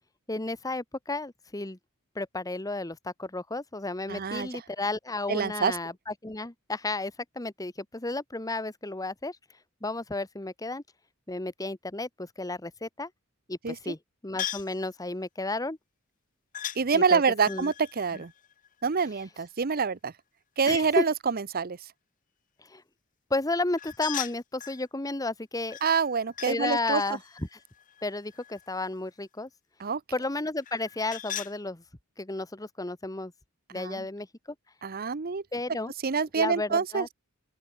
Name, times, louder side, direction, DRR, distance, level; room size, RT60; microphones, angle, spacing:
voice 1, 0.3-1.8 2.1-9.4 9.8-10.8 11.3-13.1 13.5-14.0 14.2-15.8 16.9-17.2 17.5-17.7 20.7-21.0 22.7-22.8 23.3-25.8 26.5-27.6 28.0-29.5 30.1-31.8 32.2-33.3 33.7-34.3 35.5-35.9 36.4-37.1, left 2 dB, 15° left, 1.2 m, -32 dB
voice 2, 4.1-4.6 5.3-5.8 13.6-13.8 16.8-18.3 18.8-20.1 20.6-21.9 25.8-27.0 29.8-30.0 33.7-34.0 34.8-35.4 36.0-37.1, right 5 dB, 45° right, 0.7 m, -26 dB
sound 1, 14.4-14.8 16.5-16.8 17.4-19.2 23.8-24.8 25.7-26.6 26.9-28.8 30.6-31.6, left 11 dB, 40° left, 0.8 m, -39 dB
open air
head